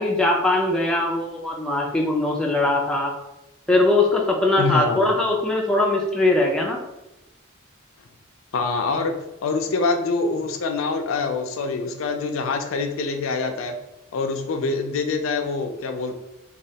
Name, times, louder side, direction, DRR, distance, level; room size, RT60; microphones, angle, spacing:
voice 1, 0.0-3.1 3.7-6.8, left 2 dB, 5° left, -2 dB, 0.4 m, -21 dB
voice 2, 4.6-5.0 8.5-9.2 9.4-13.8 14.1-16.1, left 4 dB, 80° left, 6 dB, 0.4 m, -25 dB
3.1 x 2.3 x 2.8 m, 0.94 s
head